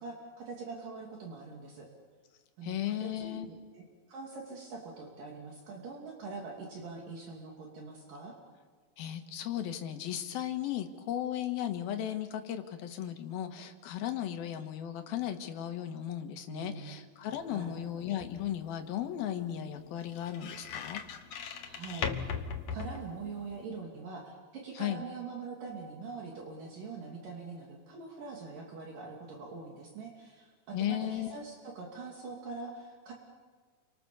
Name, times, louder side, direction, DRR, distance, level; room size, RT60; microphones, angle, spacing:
voice 1, 0.0-1.9 2.6-8.4 16.5-17.0 17.5-17.8 21.6-33.1, right 4 dB, 65° right, 0 dB, 4.3 m, -43 dB
voice 2, 2.6-3.5 9.0-21.0 24.8-25.0 30.7-31.4, left 11 dB, 80° left, 6 dB, 3.3 m, -36 dB
sound 1, 17.4-23.6, left 6 dB, 55° left, 2.1 m, -40 dB
30.0 x 24.5 x 7.0 m, 1.5 s
omnidirectional pair, 4.2 m